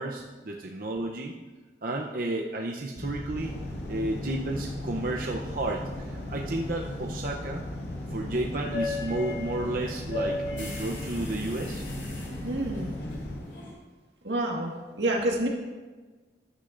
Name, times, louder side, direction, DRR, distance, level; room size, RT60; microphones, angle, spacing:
voice 1, 0.0-1.3 1.8-3.6 3.9-7.7 8.1-11.8, right 2 dB, 50° right, 0 dB, 0.6 m, -32 dB
sound 1, 3.0-13.4, left 1 dB, 60° left, 0.9 m, -38 dB
sound 2, 3.4-13.7, left 1 dB, 80° left, 3.2 m, -38 dB
voice 2, 12.4-12.9 14.2-15.5, right 1 dB, 80° right, 0 dB, 1.6 m, -28 dB
13.5 x 9.8 x 2.5 m, 1.3 s
head